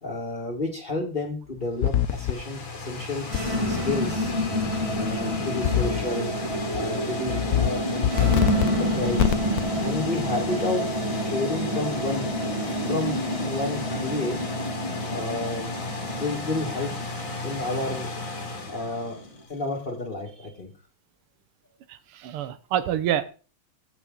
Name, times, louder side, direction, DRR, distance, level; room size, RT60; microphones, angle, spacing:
voice 1, 0.0-3.3 3.7-4.3 4.9-6.3 6.7-9.4 9.8-12.3 12.6-14.4 15.1-15.7 16.1-16.9 17.4-18.1 18.7-19.2 19.5-20.7, left 2 dB, 25° left, -2 dB, 2.0 m, -31 dB
sound 1, 1.6-19.7, left 2 dB, 40° left, 2.2 m, -35 dB
sound 2, 1.8-2.3 3.3-3.4 5.6-6.1 6.5-6.8 7.3-7.7 8.0-8.7 9.2-9.6, left 11 dB, 70° left, 0.9 m, -23 dB
sound 3, 3.2-19.3, equal, 15° right, 1.5 m, -29 dB
voice 2, 21.9-23.2, right 10 dB, 90° right, 12 dB, 1.8 m, -27 dB
16.0 x 6.3 x 3.9 m, 0.36 s
omnidirectional pair, 2.4 m